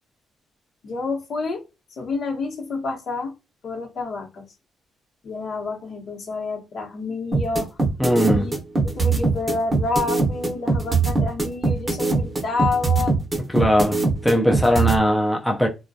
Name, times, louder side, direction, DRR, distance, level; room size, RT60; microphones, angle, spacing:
voice 1, 0.8-1.6 2.0-3.3 3.6-4.4 5.2-7.8 8.2-8.5 8.8-13.2 14.4-14.5, left 3 dB, 60° left, 0.9 m, -28 dB
sound 1, 7.3-14.9, right 4 dB, 25° right, 0.7 m, -21 dB
voice 2, 8.0-8.5 13.5-15.7, equal, 5° left, 0.4 m, -19 dB
2.2 x 2.2 x 2.6 m
cardioid pair, 90°, 0 cm